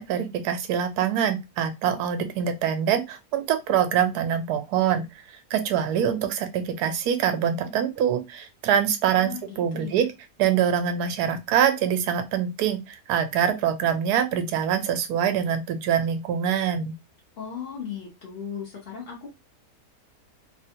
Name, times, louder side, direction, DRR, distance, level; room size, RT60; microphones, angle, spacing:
voice 1, 0.0-5.0 5.5-10.1 10.4-16.9, right 8 dB, 75° right, 1.1 m, -24 dB
voice 2, 9.1-10.0 17.4-19.3, left 7 dB, 40° left, 0.9 m, -37 dB
3.3 x 2.4 x 2.8 m
omnidirectional pair, 1.8 m